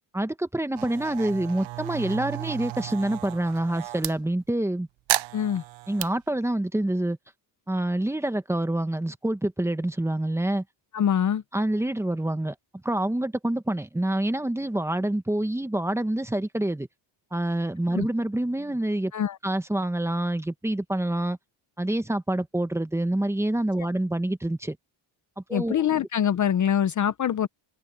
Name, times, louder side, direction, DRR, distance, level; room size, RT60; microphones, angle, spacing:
voice 1, 0.1-4.9 5.9-7.2 7.7-10.6 11.5-12.5 12.8-16.9 17.3-19.1 19.4-21.4 21.8-24.8 25.5-25.8, right 1 dB, 5° right, 0.9 m, -27 dB
sound 1, 0.8-4.1 5.1-6.1, right 16 dB, 80° right, 0.8 m, -33 dB
voice 2, 5.3-5.6 10.9-11.4 17.9-18.1 19.1-19.4 25.5-27.5, left 9 dB, 40° left, 0.7 m, -24 dB
cardioid pair, 150°, 46 cm